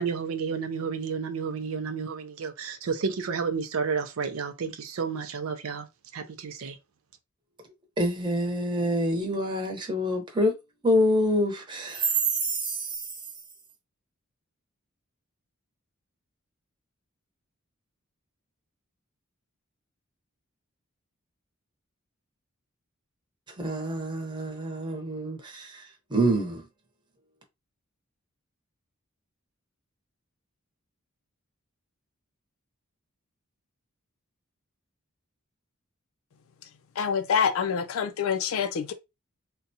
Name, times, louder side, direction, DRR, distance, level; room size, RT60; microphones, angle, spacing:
voice 1, 0.0-5.9 6.1-6.8, right 5 dB, 75° right, 0.5 m, -31 dB
voice 2, 8.0-10.6 10.8-13.2 23.5-26.7, equal, 20° right, 0.9 m, -27 dB
voice 3, 37.0-38.9, left 7 dB, 75° left, 0.4 m, -26 dB
3.8 x 2.2 x 2.7 m
head